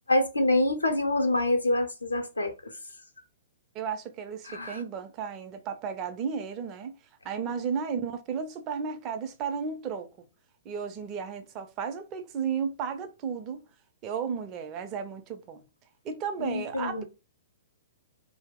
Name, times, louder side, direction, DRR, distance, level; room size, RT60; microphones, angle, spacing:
voice 1, 0.1-2.8 4.4-4.8 16.4-17.0, left 1 dB, 85° left, 0.6 m, -26 dB
voice 2, 3.7-7.0 7.2-10.3 10.6-13.6 14.0-15.7 16.0-17.0, right 6 dB, 30° right, 0.5 m, -34 dB
2.8 x 2.0 x 3.5 m
figure-of-eight pair, 115°, 0 cm